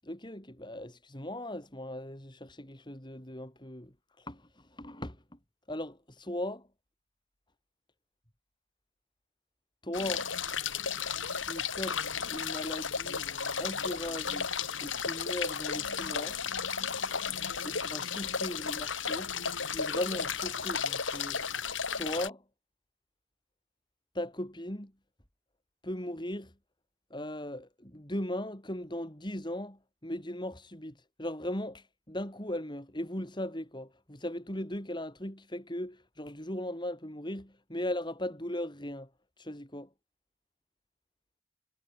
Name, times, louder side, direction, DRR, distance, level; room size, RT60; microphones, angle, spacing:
voice 1, 0.1-3.9 4.2-4.4 4.7-5.2 5.7-6.6 9.8-10.3 11.4-13.2 13.6-14.5 14.8-16.4 17.6-19.3 19.7-21.4 21.9-22.4 24.1-24.9 25.8-26.5 27.1-29.8 30.0-30.9 31.2-39.1 39.4-39.9, left 1 dB, 25° left, 5.5 m, -38 dB
sound 1, 9.9-22.3, left 6 dB, 85° left, 7.2 m, -34 dB
head